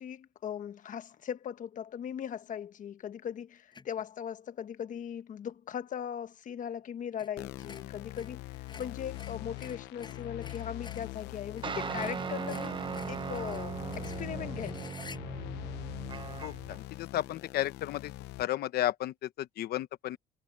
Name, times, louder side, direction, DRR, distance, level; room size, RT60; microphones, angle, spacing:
voice 1, 0.0-12.8 13.1-15.0, left 9 dB, 50° left, 1.3 m, -39 dB
sound 1, 3.7-4.0 7.1-7.3 7.6-11.1 11.6-11.7 12.0-15.2, left 4 dB, 25° left, 6.8 m, -49 dB
sound 2, 7.4-18.4, left 19 dB, 90° left, 0.8 m, -43 dB
sound 3, 11.6-16.8, right 6 dB, 30° right, 0.8 m, -38 dB
voice 2, 16.4-18.1 18.4-20.2, left 13 dB, 65° left, 1.0 m, -33 dB
cardioid pair, 110°, 17 cm